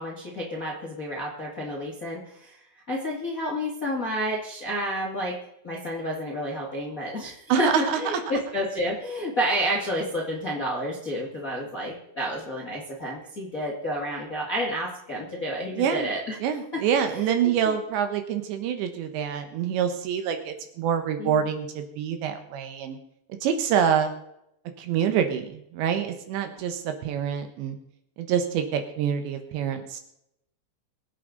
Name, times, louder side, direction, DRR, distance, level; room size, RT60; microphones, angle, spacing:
voice 1, 0.0-2.6 2.9-5.3 5.6-16.3 16.7-16.8 17.1-17.3 17.6-17.7 21.2-21.4 26.5-26.6, equal, 35° left, -3 dB, 1.3 m, -30 dB
voice 2, 7.5-8.2 15.8-16.1 16.4-23.0 23.4-24.1 24.8-27.8 28.2-30.0, right 8 dB, 75° right, 7 dB, 3.2 m, -26 dB
23.0 x 8.4 x 3.9 m, 0.78 s
omnidirectional pair, 5.6 m